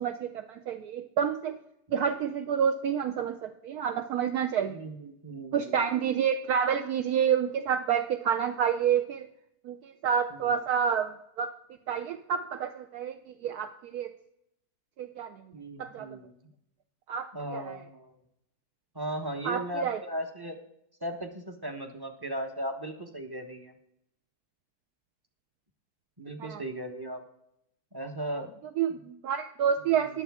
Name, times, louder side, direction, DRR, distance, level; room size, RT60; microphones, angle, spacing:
voice 1, 0.0-1.6 1.9-4.8 5.5-9.3 9.6-11.5 11.9-14.1 15.0-15.4 15.8-16.1 17.1-17.8 19.4-20.0 26.4-26.6 28.8-30.2, right 8 dB, 70° right, 8 dB, 1.0 m, -29 dB
voice 2, 4.7-5.9 10.3-10.5 15.5-16.3 17.3-18.2 18.9-20.6 21.0-23.7 26.2-27.2 27.9-28.6 29.9-30.1, right 1 dB, 20° right, 5 dB, 0.7 m, -37 dB
19.5 x 7.0 x 3.5 m, 0.79 s
omnidirectional pair, 1.8 m